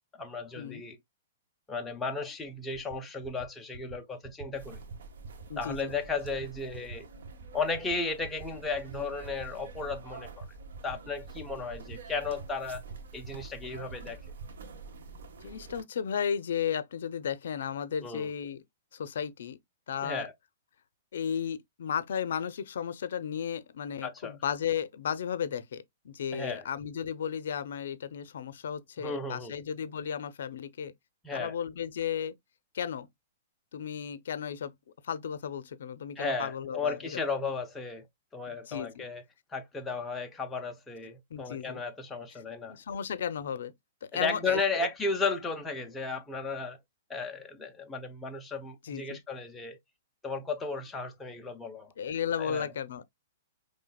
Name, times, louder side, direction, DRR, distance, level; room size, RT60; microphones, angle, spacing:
voice 1, 0.2-1.0 1.7-4.8 5.6-7.1 7.5-10.4 10.8-12.8 13.1-14.2 18.0-18.3 20.0-20.3 24.0-24.4 26.3-26.6 29.0-29.6 31.2-31.5 36.2-38.0 38.3-39.2 39.5-42.8 44.1-46.8 47.1-49.8 50.2-51.9 52.4-52.7, left 4 dB, 10° left, 0.7 m, -34 dB
sound 1, 2.4-2.5 2.7-3.0 3.2-3.5 3.7-4.0 4.2-4.5 4.7-5.0 5.2-5.5 5.7-6.0 6.2-6.5 6.7-7.0 7.2-7.5 7.7-8.0 8.2-8.5 8.7-9.0 9.2-9.5 9.7-10.0 10.2-10.5 10.7-11.0 11.2-11.5 11.7-12.0 12.2-12.5 12.7-12.9 13.2-13.5 13.7-13.9 14.2-14.5, right 4 dB, 55° right, 1.1 m, -45 dB
sound 2, 4.5-15.8, right 4 dB, 70° right, 1.5 m, -47 dB
voice 2, 5.5-5.9 15.4-18.6 18.9-19.6 19.9-20.3 21.1-30.9 31.3-32.3 32.7-33.1 33.7-34.7 35.0-37.2 38.5-39.0 41.3-41.8 42.7-43.7 44.0-44.9 48.8-49.2 52.0-53.0, left 8 dB, 70° left, 0.5 m, -34 dB
5.5 x 3.2 x 2.3 m
hypercardioid pair, 155°, 0 cm